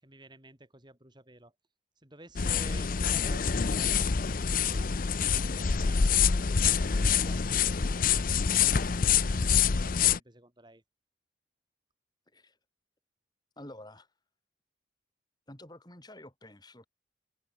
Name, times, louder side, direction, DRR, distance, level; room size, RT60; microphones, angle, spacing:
voice 1, 0.0-1.5 2.0-4.3 5.1-9.0 9.8-10.8, right 2 dB, 25° right, 5.7 m, -53 dB
sound 1, 2.4-10.2, left 6 dB, 50° left, 0.6 m, -26 dB
voice 2, 13.6-14.1 15.5-16.9, left 1 dB, 20° left, 5.9 m, -49 dB
open air
head